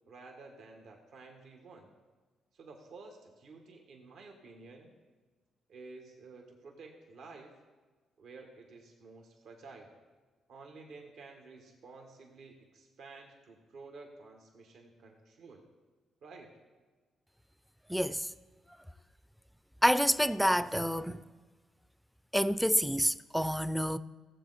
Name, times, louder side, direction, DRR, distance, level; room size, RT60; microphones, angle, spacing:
voice 1, 0.1-1.9 2.5-4.9 5.7-7.5 8.2-9.9 10.5-15.6 16.2-16.5, right 3 dB, 70° right, 1.6 m, -52 dB
voice 2, 17.9-18.3 19.8-21.2 22.3-24.0, equal, ahead, 0.4 m, -28 dB
16.5 x 7.8 x 4.1 m
cardioid pair, 90°, 0 cm